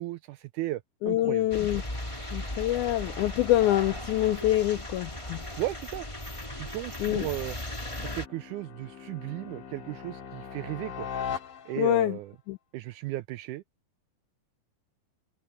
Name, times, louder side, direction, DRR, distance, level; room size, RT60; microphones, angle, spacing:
voice 1, 0.0-1.4 5.6-6.1 6.6-7.6 8.0-11.1 11.7-12.3 12.7-13.6, right 16 dB, 85° right, 1.8 m, -35 dB
voice 2, 1.0-1.8 2.3-5.4 7.0-7.3 11.8-12.2 12.5-12.6, left 15 dB, 85° left, 1.7 m, -25 dB
sound 1, 1.5-8.3, left 1 dB, 10° left, 2.3 m, -37 dB
sound 2, 5.7-12.1, left 7 dB, 65° left, 3.5 m, -41 dB
omnidirectional pair, 4.0 m